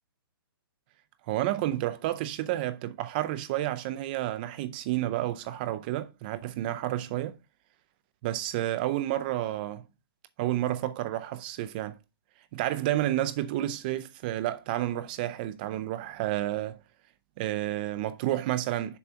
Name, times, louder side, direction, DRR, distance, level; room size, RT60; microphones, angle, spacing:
voice 1, 1.3-7.4 8.2-9.8 10.4-12.0 12.5-16.8 17.4-19.0, right 14 dB, 25° right, 0.4 m, -30 dB
7.0 x 3.9 x 4.6 m
hypercardioid pair, 160°, 13 cm